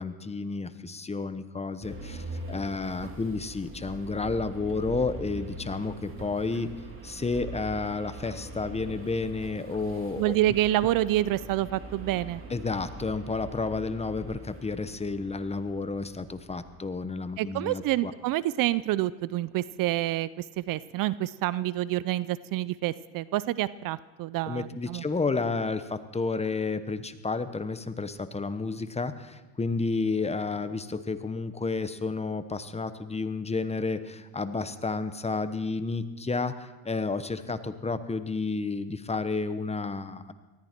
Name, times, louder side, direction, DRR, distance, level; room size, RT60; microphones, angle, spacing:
voice 1, 0.0-6.7 7.0-10.3 12.5-18.1 24.5-40.3, left 3 dB, 15° left, 11 dB, 1.0 m, -31 dB
sound 1, 1.8-17.0, right 2 dB, 30° right, 3.0 m, -43 dB
voice 2, 10.2-12.4 17.4-20.3 20.6-25.0, right 15 dB, 55° right, 18 dB, 0.5 m, -28 dB
19.0 x 14.0 x 4.5 m, 1.2 s
supercardioid pair, 90°, 41 cm